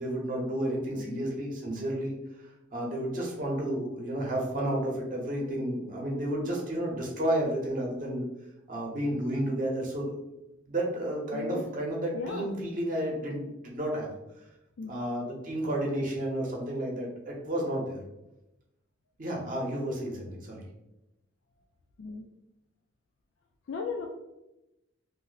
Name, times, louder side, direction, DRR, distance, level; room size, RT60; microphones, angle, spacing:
voice 1, 0.0-8.2 8.7-10.2 10.7-14.1 14.9-18.0 19.2-20.7, right 1 dB, 45° right, -1 dB, 0.7 m, -31 dB
voice 2, 11.3-11.6 12.1-12.5 14.8-15.0 22.0-22.3 23.7-24.1, left 4 dB, 65° left, 2 dB, 0.3 m, -36 dB
2.6 x 2.0 x 3.9 m, 0.92 s
head